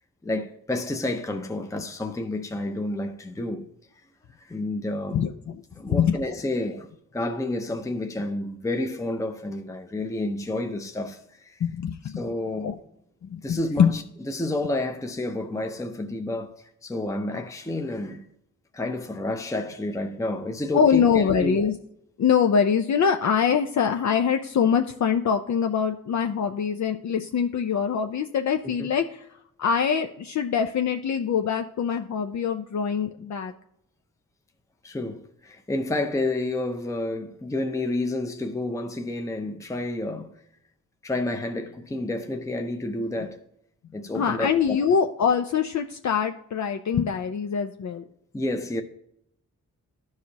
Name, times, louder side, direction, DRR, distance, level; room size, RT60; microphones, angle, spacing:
voice 1, 0.2-3.7 4.4-5.2 5.8-11.6 12.2-12.8 13.4-14.0 14.3-18.2 18.7-21.6 28.8-28.9 34.8-40.3 41.0-43.4 43.9-44.8 48.3-48.8, left 2 dB, 10° left, 0.6 m, -30 dB
voice 2, 5.1-6.3 11.6-12.2 12.6-12.7 13.2-14.0 20.7-21.7 22.2-29.3 29.6-33.5 44.1-48.0, left 7 dB, 60° left, 0.5 m, -24 dB
13.0 x 4.8 x 2.8 m
wide cardioid pair, 105°, 32 cm